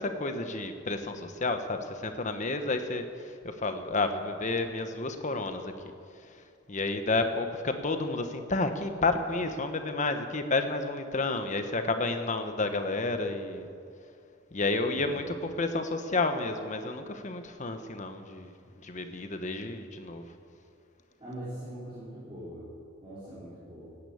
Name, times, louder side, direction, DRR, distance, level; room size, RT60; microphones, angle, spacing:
voice 1, 0.0-5.7 6.2-6.4 6.7-13.7 14.5-18.5 18.8-20.2, left 3 dB, 40° left, 7 dB, 1.2 m, -31 dB
voice 2, 21.2-22.7 23.0-24.0, right 1 dB, 30° right, -11 dB, 4.7 m, -42 dB
16.0 x 10.0 x 8.7 m, 2.4 s
head